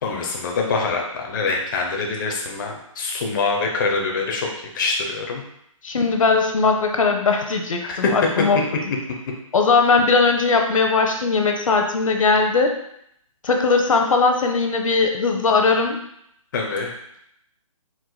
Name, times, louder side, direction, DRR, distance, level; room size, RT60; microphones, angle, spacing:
voice 1, 0.0-4.5 4.7-5.4 7.8-8.1 10.8-10.9 16.5-16.9, left 4 dB, 35° left, 0 dB, 0.6 m, -24 dB
voice 2, 5.8-8.6 9.5-12.7 13.4-16.0, left 4 dB, 70° left, 3 dB, 0.7 m, -19 dB
4.6 x 3.8 x 2.2 m, 0.73 s
hypercardioid pair, 155°, 18 cm